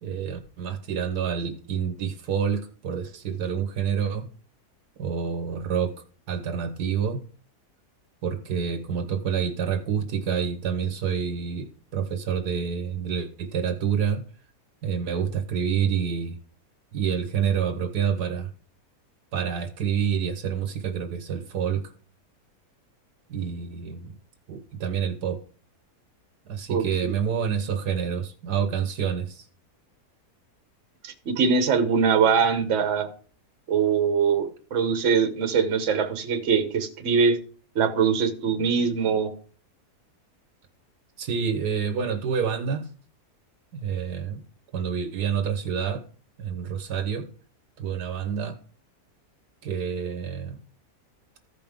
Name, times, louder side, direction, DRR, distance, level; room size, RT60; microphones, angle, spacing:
voice 1, 0.0-4.3 5.0-5.9 6.3-7.2 8.2-14.2 14.8-16.4 16.9-18.5 19.3-21.8 23.3-24.1 24.5-25.4 26.5-29.5 41.2-42.8 43.7-44.4 44.7-46.0 46.4-47.3 47.8-48.6 49.6-50.6, right 7 dB, 80° right, 8 dB, 1.6 m, -28 dB
voice 2, 26.7-27.1 31.0-33.1 33.7-37.4 37.7-39.3, right 6 dB, 50° right, 6 dB, 1.3 m, -22 dB
14.5 x 5.4 x 3.6 m, 0.40 s
omnidirectional pair, 1.7 m